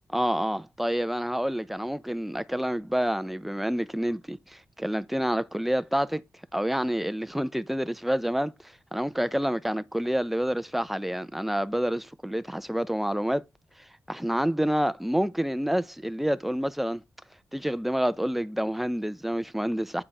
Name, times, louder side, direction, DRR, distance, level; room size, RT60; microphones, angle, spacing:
voice 1, 0.1-6.2 6.5-8.5 8.9-13.4 14.1-17.0 17.5-20.0, equal, 5° right, 0.5 m, -28 dB
8.8 x 4.5 x 5.3 m
wide cardioid pair, 115°, 6 cm